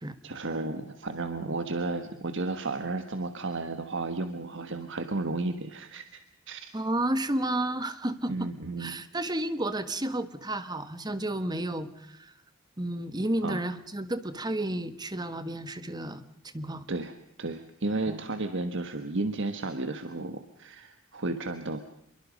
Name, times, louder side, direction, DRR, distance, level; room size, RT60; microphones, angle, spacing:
voice 1, 0.2-6.7 8.3-9.0 13.4-13.6 16.9-21.8, right 2 dB, 60° right, 8 dB, 1.4 m, -33 dB
voice 2, 6.7-8.5 8.8-12.3 12.8-16.2 16.5-16.9 18.1-18.4, right 1 dB, 20° right, 11 dB, 1.5 m, -32 dB
26.5 x 23.0 x 5.2 m, 0.80 s
head